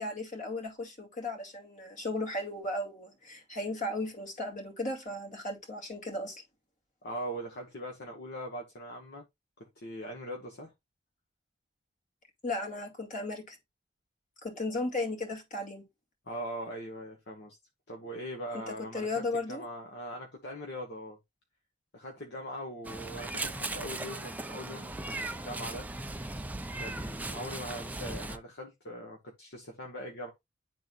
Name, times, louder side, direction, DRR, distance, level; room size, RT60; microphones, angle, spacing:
voice 1, 0.0-6.4 12.4-13.6 14.4-15.8 18.5-19.6, left 2 dB, 45° left, 2.2 m, -35 dB
voice 2, 7.0-9.2 9.6-10.7 16.3-17.6 17.9-21.2 21.9-25.9 26.8-30.3, equal, 60° left, 1.2 m, -41 dB
Meow, 22.8-28.4, right 2 dB, 10° right, 0.5 m, -38 dB
11.0 x 3.8 x 2.5 m
head